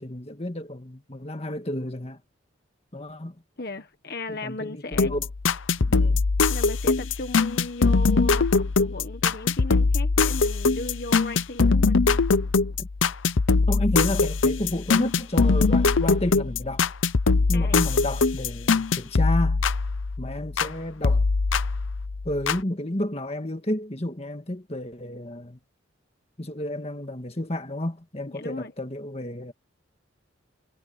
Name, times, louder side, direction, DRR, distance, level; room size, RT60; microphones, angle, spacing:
voice 1, 0.0-2.2 2.9-3.4 4.3-5.3 5.8-6.2 12.8-12.9 13.7-16.9 17.5-19.6 20.2-21.2 22.2-25.6 26.4-29.5, left 1 dB, 30° left, 1.8 m, -31 dB
voice 2, 3.6-5.1 6.5-12.0 17.5-17.8 28.3-28.7, left 2 dB, 50° left, 1.5 m, -36 dB
sound 1, 4.9-20.7 21.0-22.6, left 4 dB, 75° left, 0.7 m, -22 dB
head